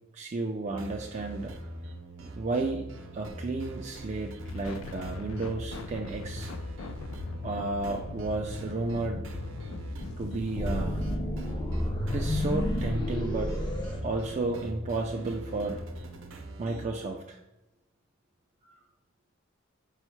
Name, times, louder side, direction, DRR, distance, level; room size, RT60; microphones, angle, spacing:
voice 1, 0.1-1.5 2.4-2.9 3.1-6.5 7.4-9.3 10.2-11.0 12.1-13.6 14.0-15.8 16.6-17.4, right 3 dB, 35° right, 2 dB, 0.4 m, -32 dB
sound 1, 0.7-16.9, right 1 dB, 70° right, 0.7 m, -42 dB
sound 2, 4.4-11.2, left 3 dB, 85° left, 0.4 m, -40 dB
sound 3, 10.6-14.8, left 1 dB, 20° left, 0.6 m, -31 dB
5.4 x 2.1 x 4.4 m, 0.96 s
head